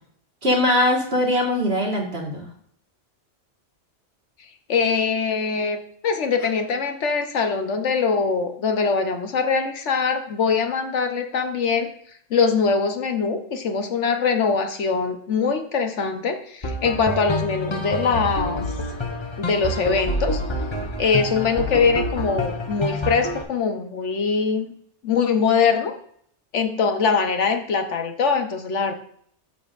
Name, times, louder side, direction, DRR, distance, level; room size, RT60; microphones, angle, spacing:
voice 1, 0.4-2.5, left 1 dB, 60° right, -1 dB, 2.3 m, -21 dB
voice 2, 4.7-5.8 6.0-11.9 12.3-18.6 19.4-20.4 21.0-24.7 25.0-25.9 26.5-28.9, left 5 dB, 85° left, 6 dB, 1.3 m, -22 dB
sound 1, 16.6-23.4, left 1 dB, 25° left, 0.9 m, -27 dB
10.0 x 7.1 x 2.6 m, 0.64 s
omnidirectional pair, 1.2 m